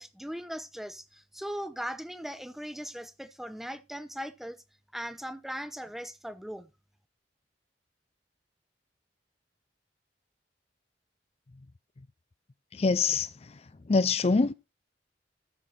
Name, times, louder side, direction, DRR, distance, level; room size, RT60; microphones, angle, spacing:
voice 1, 0.0-4.6 4.9-6.7, equal, ahead, 0.9 m, -39 dB
voice 2, 12.7-13.3 13.9-14.5, left 4 dB, 35° left, 0.5 m, -24 dB
14.0 x 5.8 x 4.1 m
head